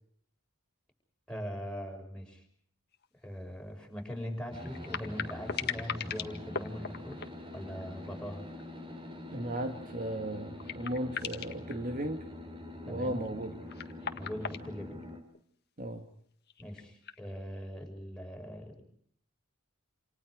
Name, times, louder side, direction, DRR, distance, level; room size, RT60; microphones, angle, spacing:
voice 1, 1.3-2.4 3.2-7.2 7.5-8.5 12.9-13.2 14.1-15.0 16.6-18.8, equal, 5° left, 2 dB, 6.2 m, -41 dB
sound 1, 2.9-3.0 3.3-3.4 4.5-8.1 8.4-8.8 9.2-9.3 10.1-10.2 10.6-11.7 13.2-15.4 16.5-17.2, left 7 dB, 50° left, 1.8 m, -39 dB
sound 2, 4.5-15.2, left 1 dB, 25° right, 3.8 m, -45 dB
voice 2, 9.3-12.3 12.9-13.5 15.8-16.0, right 1 dB, 40° right, 5 dB, 1.9 m, -36 dB
29.0 x 28.5 x 4.9 m, 0.63 s
head